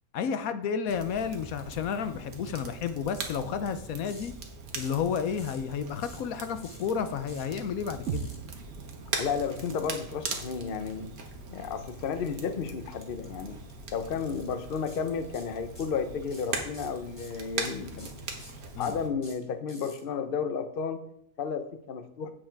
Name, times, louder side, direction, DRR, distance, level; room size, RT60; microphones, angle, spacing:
voice 1, 0.1-4.3 4.8-8.3 18.7-19.0, left 7 dB, 80° left, 10 dB, 1.2 m, -31 dB
Crackle, 0.9-19.1, right 4 dB, 85° right, 1.8 m, -41 dB
sound 1, 4.0-4.3 4.7-5.0 5.4-5.6 6.0-6.3 6.6-6.9 7.3-7.5 8.0-8.4 9.3-9.9 13.0-13.3 13.6-13.7 14.2-14.5 14.9-15.0 15.3-16.0 16.3-20.0, left 1 dB, 20° left, 1.9 m, -50 dB
sound 2, 8.1-12.0, right 8 dB, 65° right, 1.0 m, -41 dB
voice 2, 9.2-11.1 11.5-13.6 13.9-18.1 18.8-21.0 21.4-22.3, left 6 dB, 45° left, 9 dB, 0.8 m, -32 dB
8.8 x 7.6 x 4.6 m, 0.74 s
omnidirectional pair, 1.5 m